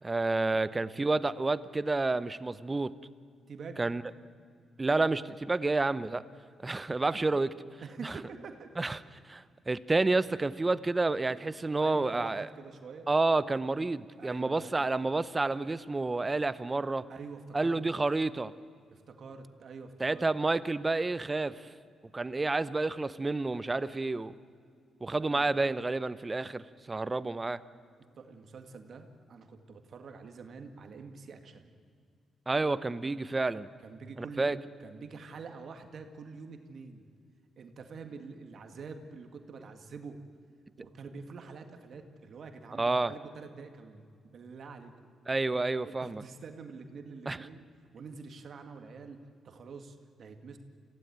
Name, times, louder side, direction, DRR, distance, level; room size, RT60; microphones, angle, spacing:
voice 1, 0.0-2.9 3.8-4.0 4.8-6.2 6.6-7.5 8.0-8.2 8.8-9.0 9.3-12.5 13.1-17.0 17.5-18.5 20.0-21.7 22.1-24.3 25.0-27.6 32.5-33.7 34.2-34.6 42.8-43.1 45.3-46.2 47.3-47.4, right 3 dB, 20° right, 15 dB, 0.8 m, -29 dB
voice 2, 3.5-3.8 7.1-7.3 7.8-8.7 11.8-13.1 14.2-14.9 17.1-17.8 18.9-20.2 25.2-25.5 28.2-31.7 33.8-37.0 37.6-40.2 40.8-45.1 45.8-47.6 47.9-50.6, right 4 dB, 55° right, 5 dB, 1.9 m, -46 dB
26.0 x 16.5 x 9.4 m, 2.2 s
cardioid pair, 95°, 0 cm